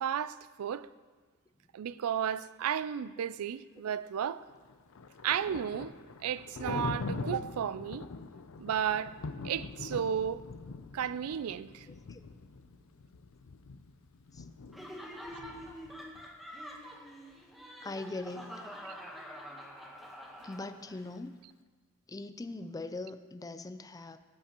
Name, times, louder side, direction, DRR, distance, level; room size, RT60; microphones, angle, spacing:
voice 1, 0.0-0.9 1.7-4.4 5.2-5.9 6.2-8.0 8.6-9.2 9.4-10.5 10.9-11.9 18.9-19.0, right 8 dB, 85° right, 0.4 m, -33 dB
Thunder, 4.5-16.3, left 3 dB, 70° left, 0.5 m, -43 dB
Laughter, 14.7-21.1, equal, ahead, 1.1 m, -46 dB
voice 2, 17.8-18.6 20.4-21.3 22.1-24.2, left 2 dB, 15° left, 0.4 m, -41 dB
16.0 x 8.4 x 2.9 m
head